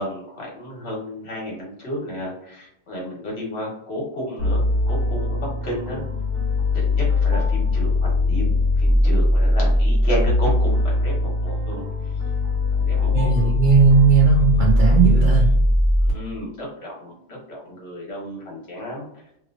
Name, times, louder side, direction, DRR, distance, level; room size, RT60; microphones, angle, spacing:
voice 1, 0.0-6.1 6.7-12.2 12.7-13.6 16.0-19.2, equal, 50° left, -3 dB, 1.3 m, -32 dB
sound 1, 4.4-16.1, left 2 dB, 55° right, 1.2 m, -20 dB
voice 2, 13.1-15.6, right 5 dB, 90° right, -1 dB, 0.4 m, -17 dB
3.0 x 2.9 x 2.4 m, 0.76 s
omnidirectional pair, 1.4 m